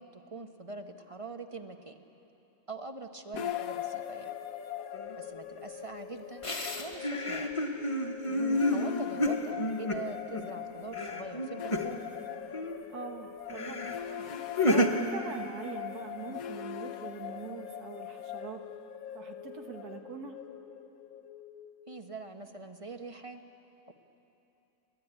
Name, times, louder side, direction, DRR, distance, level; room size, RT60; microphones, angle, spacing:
voice 1, 0.0-2.0 2.7-4.3 5.2-6.4 6.8-7.6 8.7-12.1 21.9-23.4 23.9-24.0, right 3 dB, 25° right, 6 dB, 0.8 m, -43 dB
sound 1, 3.3-22.5, left 10 dB, 65° left, 1.1 m, -41 dB
sound 2, 4.9-5.2 6.4-10.6 10.9-12.2 12.5-13.0 13.5-14.0 14.3-14.9, left 1 dB, 20° left, 1.2 m, -31 dB
voice 2, 8.2-8.6 12.9-13.8 14.2-18.6 19.1-20.4, right 5 dB, 75° right, 4 dB, 1.6 m, -42 dB
29.0 x 12.5 x 9.9 m, 2.9 s
omnidirectional pair, 1.7 m